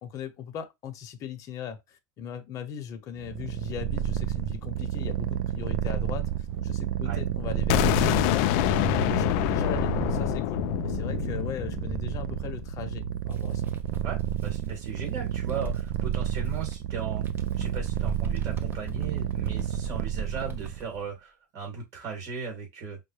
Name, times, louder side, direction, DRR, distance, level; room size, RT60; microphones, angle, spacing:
voice 1, 0.0-13.6, left 8 dB, 35° left, 0.8 m, -39 dB
Purr, 3.2-20.9, right 11 dB, 55° right, 0.4 m, -31 dB
sound 1, 7.7-13.5, left 14 dB, 55° left, 0.3 m, -27 dB
Bird, 13.2-16.8 17.2-21.0, right 1 dB, 20° right, 0.7 m, -42 dB
voice 2, 14.0-17.3 17.6-23.0, right 5 dB, 40° right, 3.0 m, -37 dB
5.4 x 2.2 x 3.2 m
supercardioid pair, 150°, 9 cm